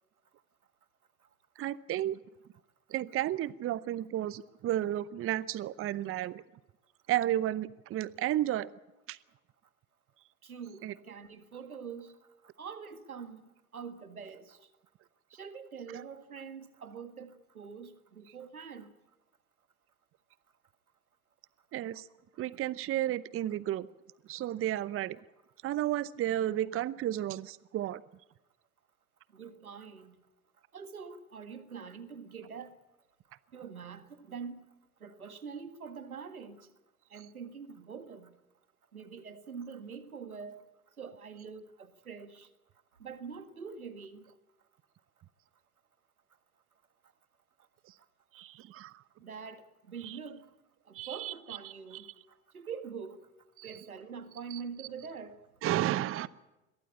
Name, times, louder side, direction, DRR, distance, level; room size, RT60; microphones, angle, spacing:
voice 1, 1.6-2.2 2.9-6.4 7.1-8.7 9.1-9.2 10.8-10.9 21.7-22.1 22.4-23.9 24.3-25.2 25.6-28.0 48.3-49.0 50.0-50.2 50.9-51.3 51.6-52.0 53.6-53.8 54.5-54.6 55.6-56.3, right 13 dB, 30° right, 19 dB, 0.8 m, -32 dB
voice 2, 10.4-12.2 12.6-13.4 13.7-14.7 15.3-18.9 29.3-30.2 30.7-32.7 33.5-34.6 35.0-36.7 37.1-38.3 38.9-40.6 41.0-42.5 43.0-44.3 49.2-50.5 50.9-52.1 52.5-53.2 53.6-55.4, right 6 dB, 90° right, 10 dB, 1.9 m, -44 dB
22.5 x 16.5 x 8.5 m, 1.0 s
hypercardioid pair, 75°, 42 cm